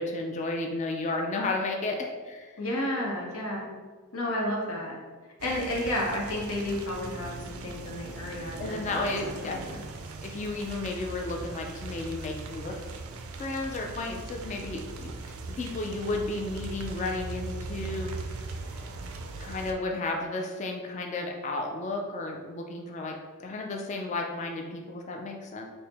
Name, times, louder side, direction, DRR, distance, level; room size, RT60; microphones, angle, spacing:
voice 1, 0.0-2.6 8.6-9.6 10.2-12.8 13.4-18.6 19.4-23.1 23.4-25.7, left 2 dB, 35° left, 1 dB, 0.3 m, -33 dB
voice 2, 2.6-3.7 4.1-5.0 5.4-9.0 9.4-9.6, left 1 dB, 75° left, -2 dB, 0.9 m, -31 dB
sound 1, 5.4-19.7, right 3 dB, 80° right, 0.4 m, -40 dB
4.4 x 2.0 x 3.3 m, 1.4 s
head